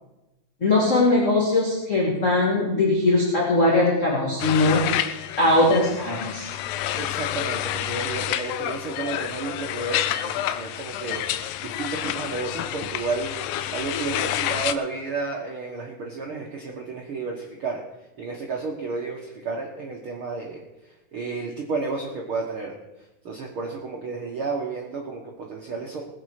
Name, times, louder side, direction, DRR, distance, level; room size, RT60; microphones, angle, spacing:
voice 1, 0.6-4.8 5.4-6.5, left 2 dB, 25° left, -4 dB, 1.9 m, -20 dB
sound 1, 4.4-14.8, left 12 dB, 90° left, 2.8 m, -29 dB
voice 2, 6.9-17.8 18.2-22.7 23.2-26.0, right 4 dB, 80° right, -1 dB, 1.2 m, -32 dB
20.5 x 7.8 x 4.9 m, 0.99 s
omnidirectional pair, 4.7 m